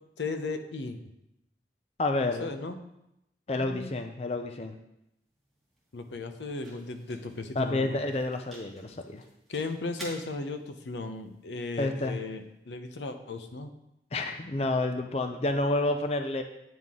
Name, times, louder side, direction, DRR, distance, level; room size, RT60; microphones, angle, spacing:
voice 1, 0.2-1.0 2.4-2.8 3.5-3.9 5.9-8.0 9.5-13.7, left 3 dB, 90° left, 8 dB, 0.7 m, -36 dB
voice 2, 2.0-2.5 3.5-4.8 7.6-9.2 11.8-12.2 14.1-16.4, left 2 dB, 35° left, 6 dB, 0.5 m, -29 dB
sound 1, 5.0-13.1, right 1 dB, ahead, 1.8 m, -52 dB
9.3 x 5.8 x 3.7 m, 0.84 s
head